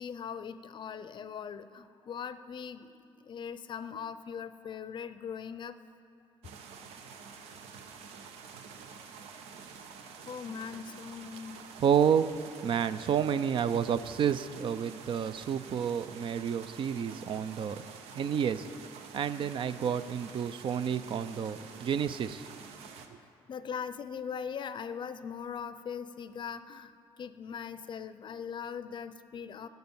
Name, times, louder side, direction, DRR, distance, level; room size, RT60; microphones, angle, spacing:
voice 1, 0.0-5.7 6.8-6.9 10.1-11.6 23.5-26.9 27.2-29.7, left 7 dB, 50° left, 13 dB, 0.5 m, -40 dB
sound 1, 6.4-23.1, right 6 dB, 90° right, 0.8 m, -48 dB
voice 2, 11.8-12.3 12.6-17.8 18.1-18.7 19.1-22.5, right 8 dB, 55° right, 13 dB, 0.5 m, -30 dB
9.4 x 8.1 x 7.1 m, 2.6 s
cardioid pair, 90°, 10 cm